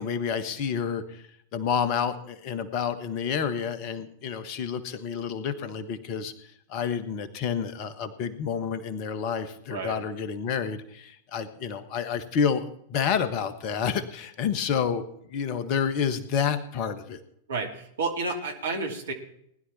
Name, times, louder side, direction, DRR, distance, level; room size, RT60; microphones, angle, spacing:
voice 1, 0.0-15.0 15.3-17.2, left 7 dB, 40° left, 11 dB, 1.5 m, -29 dB
voice 2, 9.7-10.0 17.5-19.1, right 3 dB, 65° right, 3 dB, 2.8 m, -31 dB
19.5 x 11.5 x 4.3 m, 0.70 s
figure-of-eight pair, 90°, 0 cm